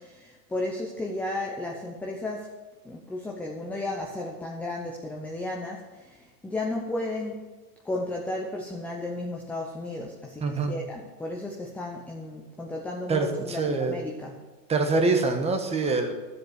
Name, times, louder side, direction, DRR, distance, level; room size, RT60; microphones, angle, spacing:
voice 1, 0.0-2.5 2.8-7.4 7.8-14.4, left 2 dB, 5° left, 0 dB, 0.7 m, -34 dB
voice 2, 10.4-10.7 13.1-14.0 14.7-16.1, right 3 dB, 10° right, 5 dB, 1.2 m, -25 dB
12.5 x 7.7 x 6.6 m, 1.3 s
hypercardioid pair, 140°, 50 cm